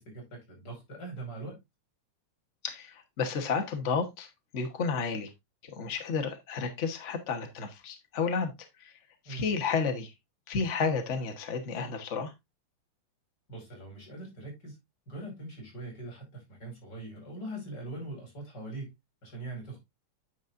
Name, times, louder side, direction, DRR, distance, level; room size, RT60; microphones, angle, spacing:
voice 1, 0.0-1.6 9.3-9.5 13.5-14.8 15.1-18.9 19.2-19.8, right 2 dB, 35° left, 5.5 m, -42 dB
voice 2, 2.6-4.3 4.5-5.3 5.6-8.5 8.8-8.9 9.3-10.1 10.5-12.3, left 5 dB, 75° left, 0.6 m, -31 dB
9.6 x 7.2 x 2.6 m
omnidirectional pair, 3.4 m